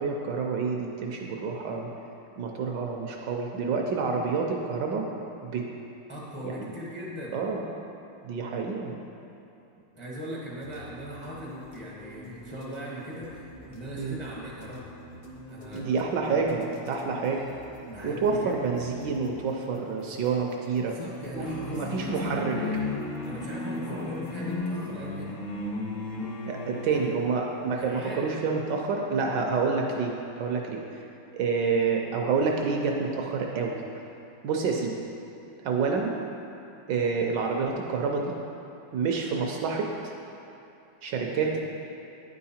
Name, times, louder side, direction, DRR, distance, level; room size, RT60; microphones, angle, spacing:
voice 1, 0.0-1.9 2.4-5.1 5.4-5.7 6.4-6.7 7.3-7.6 8.2-8.9 14.0-14.1 15.7-17.5 18.0-20.9 21.3-22.5 23.9-24.1 26.5-31.1 31.3-33.8 34.4-35.0 35.6-36.2 36.9-38.3 38.9-40.1 41.0-41.6, right 5 dB, 75° right, 1 dB, 1.1 m, -28 dB
voice 2, 6.1-7.3 9.9-14.9 15.5-15.9 17.8-18.6 20.7-22.8 23.2-25.4 26.8-27.1 27.8-28.3 41.4-41.6, equal, 20° left, -5 dB, 0.3 m, -39 dB
sound 1, 10.6-24.6, left 1 dB, 55° left, 0.9 m, -47 dB
sound 2, 21.4-27.3, left 2 dB, 75° left, 1.7 m, -34 dB
9.3 x 4.7 x 4.2 m, 2.8 s
omnidirectional pair, 2.3 m